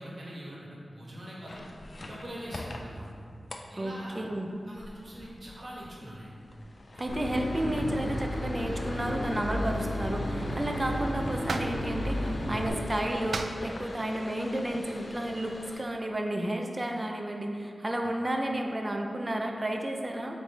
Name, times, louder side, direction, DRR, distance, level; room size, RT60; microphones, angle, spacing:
voice 1, 0.0-1.6 2.0-3.1 3.7-4.2 4.7-6.3 18.0-18.1, equal, 55° right, -5 dB, 1.5 m, -43 dB
sound 1, 1.5-15.8, left 2 dB, 45° left, 0.4 m, -45 dB
voice 2, 3.8-4.5 6.9-20.4, right 1 dB, 25° right, 2 dB, 0.6 m, -32 dB
Boat Water vehicle / Engine, 7.1-12.7, left 1 dB, 90° left, 0.9 m, -33 dB
sound 2, 10.3-15.7, right 3 dB, 70° right, 0.3 m, -41 dB
7.7 x 3.3 x 4.1 m, 2.2 s
wide cardioid pair, 105°, 0 cm